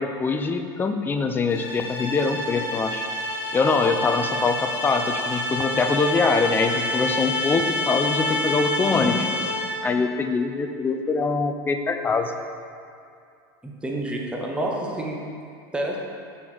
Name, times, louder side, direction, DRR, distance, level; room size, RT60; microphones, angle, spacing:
voice 1, 0.0-3.0 3.5-9.5 9.8-12.3, left 4 dB, 15° left, 6 dB, 0.4 m, -23 dB
sound 1, 1.5-9.9, left 1 dB, 85° left, 1.4 m, -28 dB
voice 2, 13.6-15.2 15.7-16.0, right 1 dB, 10° right, -1 dB, 0.9 m, -28 dB
6.0 x 4.6 x 3.9 m, 2.4 s
supercardioid pair, 110°, 12 cm